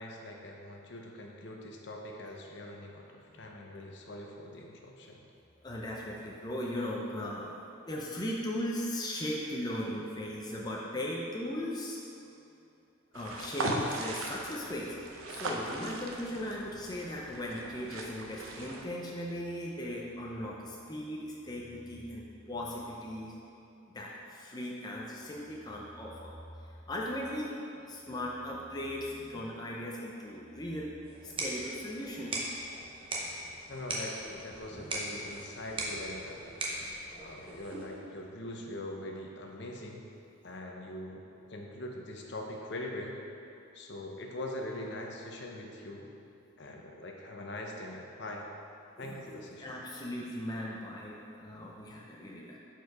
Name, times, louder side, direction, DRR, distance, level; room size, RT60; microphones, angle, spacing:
voice 1, 0.0-5.2 33.7-36.6 37.2-40.1 40.4-43.2 43.7-46.1 46.6-48.5 49.0-49.8, left 1 dB, 55° left, 0 dB, 0.7 m, -42 dB
voice 2, 5.6-7.5 7.9-12.0 13.1-15.0 15.3-23.3 23.9-26.3 26.7-27.5 27.8-31.0 31.2-32.3 49.0-52.6, left 1 dB, 20° left, -3 dB, 0.6 m, -38 dB
sound 1, 13.1-18.9, right 1 dB, 80° right, 0.7 m, -38 dB
sound 2, 31.1-38.0, right 1 dB, 25° right, 0.8 m, -39 dB
7.0 x 4.5 x 4.7 m, 2.7 s
head